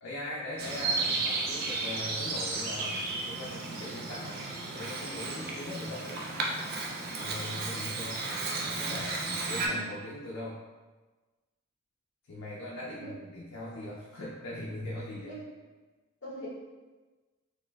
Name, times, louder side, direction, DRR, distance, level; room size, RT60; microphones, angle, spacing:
voice 1, 0.0-3.0 3.3-4.4 4.7-6.2 7.2-8.2 8.6-10.6 12.3-15.4, left 1 dB, 75° left, -5 dB, 0.5 m, -40 dB
Bird vocalization bird call bird song, 0.6-9.7, right 3 dB, 50° right, 0.4 m, -34 dB
voice 2, 9.5-9.9 13.0-13.2 15.2-15.6 16.2-16.5, equal, 55° left, -7 dB, 1.1 m, -43 dB
4.0 x 2.4 x 2.3 m, 1.3 s
head